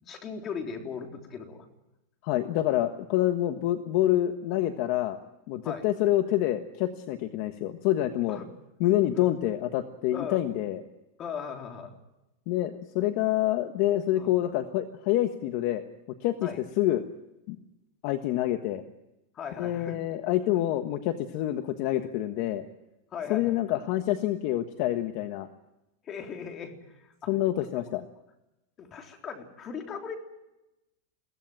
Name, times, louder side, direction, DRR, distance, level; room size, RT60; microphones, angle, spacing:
voice 1, 0.0-1.7 5.6-5.9 8.3-8.5 9.1-9.3 10.1-10.4 11.2-11.9 14.1-14.3 16.4-16.6 19.3-20.0 23.1-23.6 26.0-27.3 27.8-27.9 28.8-30.2, left 6 dB, 25° left, 4 dB, 3.6 m, -38 dB
voice 2, 2.2-5.2 5.5-8.4 8.8-10.8 12.5-15.8 16.2-16.5 16.8-17.0 17.5-17.6 18.0-18.8 19.6-22.6 23.3-25.5 27.3-28.0, left 13 dB, 50° left, 8 dB, 1.3 m, -27 dB
22.5 x 17.5 x 9.1 m, 0.93 s
supercardioid pair, 155°, 0 cm